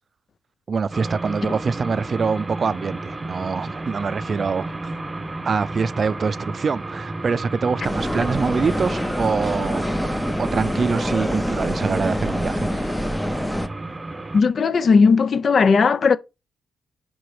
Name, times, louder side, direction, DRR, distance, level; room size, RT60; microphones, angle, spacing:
voice 1, 0.7-4.8 5.4-12.9, right 5 dB, 50° right, 0.4 m, -25 dB
sound 1, 0.9-14.4, right 2 dB, 20° right, 0.8 m, -32 dB
sound 2, 7.8-13.7, equal, 10° left, 0.7 m, -26 dB
voice 2, 14.3-16.2, left 5 dB, 55° left, 0.5 m, -16 dB
6.1 x 3.8 x 4.7 m
cardioid pair, 65°, 0 cm